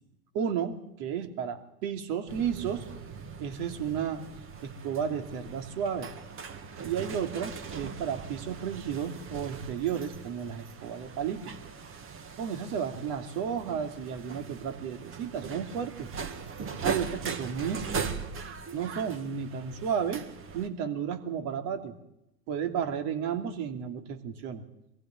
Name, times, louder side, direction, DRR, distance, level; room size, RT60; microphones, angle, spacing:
voice 1, 0.3-2.9 3.4-4.2 4.6-6.1 6.8-11.5 12.4-16.1 16.8-18.0 18.7-20.3 20.5-21.9 22.5-24.6, right 8 dB, 45° right, 6 dB, 3.0 m, -33 dB
sound 1, 2.3-20.7, right 5 dB, 25° right, 1.9 m, -40 dB
23.0 x 15.5 x 9.2 m, 0.85 s
hypercardioid pair, 110°, 50 cm